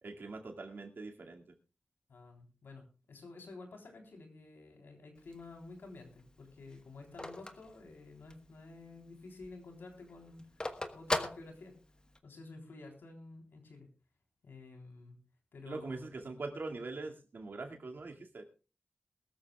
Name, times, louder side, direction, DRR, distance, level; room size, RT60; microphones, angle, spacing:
voice 1, 0.0-1.4 15.7-18.4, right 3 dB, 70° right, 3 dB, 2.3 m, -43 dB
voice 2, 2.1-10.4 10.9-11.7 12.2-13.9 14.4-15.2 15.5-16.1, left 3 dB, 90° left, 3 dB, 3.7 m, -51 dB
Telephone, 5.2-8.6 9.0-9.1 9.3-12.2, left 2 dB, 25° left, 1.3 m, -39 dB
21.5 x 13.5 x 2.4 m, 0.32 s
wide cardioid pair, 80°, 4 cm